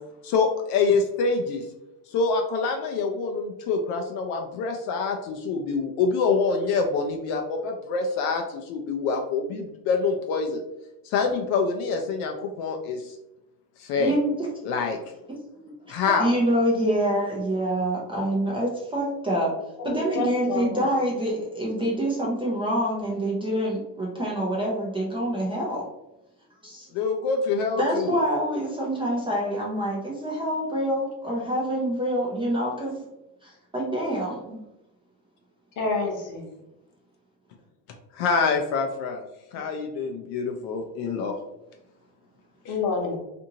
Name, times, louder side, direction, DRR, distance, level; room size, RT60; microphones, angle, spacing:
voice 1, 0.2-1.6 2.1-8.4 8.7-10.6 11.1-13.0 13.9-14.1 14.6-15.0 15.9-16.3 26.9-28.2 38.2-39.2 39.5-41.3, left 4 dB, 60° left, 3 dB, 0.5 m, -25 dB
voice 2, 13.9-14.3 15.5-19.5 19.8-25.9 26.6-26.9 27.8-33.0 33.4-34.6, right 1 dB, 15° right, -4 dB, 0.4 m, -26 dB
voice 3, 19.8-20.8 35.8-36.4 39.5-39.6 42.6-43.2, left 3 dB, 45° left, 1 dB, 0.8 m, -28 dB
2.6 x 2.6 x 2.7 m, 0.92 s
cardioid pair, 140°, 43 cm